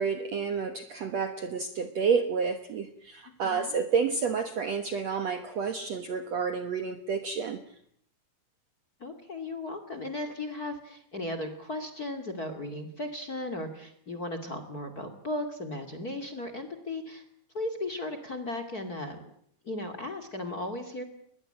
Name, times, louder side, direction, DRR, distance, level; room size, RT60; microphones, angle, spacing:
voice 1, 0.0-7.6, right 5 dB, 60° right, 9 dB, 1.9 m, -30 dB
voice 2, 3.4-3.8 9.0-17.2 17.5-19.3 19.6-21.0, left 1 dB, 30° left, 9 dB, 2.1 m, -36 dB
22.5 x 21.5 x 8.8 m, 0.67 s
omnidirectional pair, 4.6 m